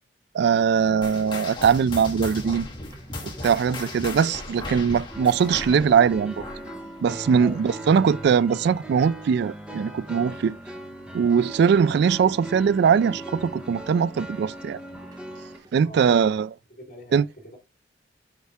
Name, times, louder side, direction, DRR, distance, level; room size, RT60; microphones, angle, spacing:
voice 1, 0.3-2.7 3.2-6.4 7.0-10.6 11.1-14.8 15.7-16.5 17.1-17.2, right 6 dB, 65° right, 0.3 m, -21 dB
sound 1, 1.0-7.9 8.1-8.5 9.1-9.2 9.9-10.0, left 2 dB, 25° left, 2.0 m, -37 dB
sound 2, 1.8-15.7, right 1 dB, 25° right, 1.3 m, -52 dB
sound 3, 5.1-15.6, right 1 dB, 5° right, 1.1 m, -39 dB
voice 2, 7.4-7.8 15.8-16.2 16.8-17.2, equal, 45° left, 3.7 m, -41 dB
8.3 x 4.8 x 3.5 m
head